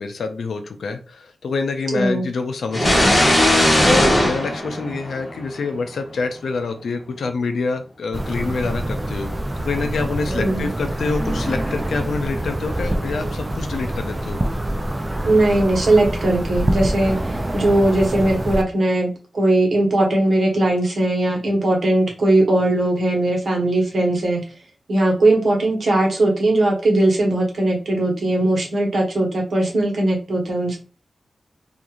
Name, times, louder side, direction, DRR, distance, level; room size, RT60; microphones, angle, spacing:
voice 1, 0.0-3.4 3.8-14.4, left 4 dB, 90° left, 6 dB, 0.4 m, -26 dB
voice 2, 1.9-2.2 10.4-10.7 15.2-24.4 24.9-30.8, right 2 dB, 60° right, -1 dB, 1.0 m, -19 dB
sound 1, 2.7-5.5, left 1 dB, 20° left, 1.1 m, -17 dB
sound 2, 8.1-18.6, right 1 dB, 20° right, 0.3 m, -25 dB
2.5 x 2.4 x 2.9 m, 0.34 s
wide cardioid pair, 95°, 0 cm